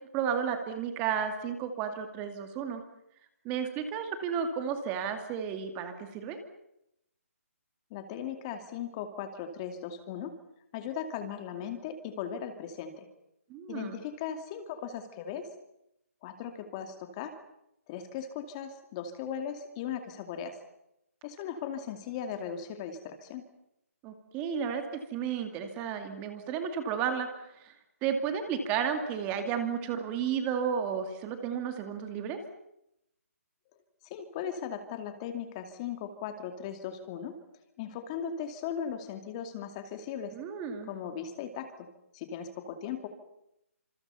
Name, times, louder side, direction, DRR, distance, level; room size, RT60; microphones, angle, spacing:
voice 1, 0.1-2.8 3.4-6.4 13.5-14.0 24.0-24.8 25.1-27.7 28.0-32.4 40.3-40.9, right 7 dB, 15° right, 7 dB, 2.5 m, -32 dB
voice 2, 7.9-10.3 10.7-13.1 13.7-15.5 16.2-17.3 17.9-20.6 21.2-23.4 34.0-37.4 37.8-40.3 40.8-41.9 42.1-43.1, left 8 dB, 25° left, 7 dB, 2.4 m, -38 dB
28.5 x 27.0 x 5.7 m, 0.80 s
hypercardioid pair, 165°, 8 cm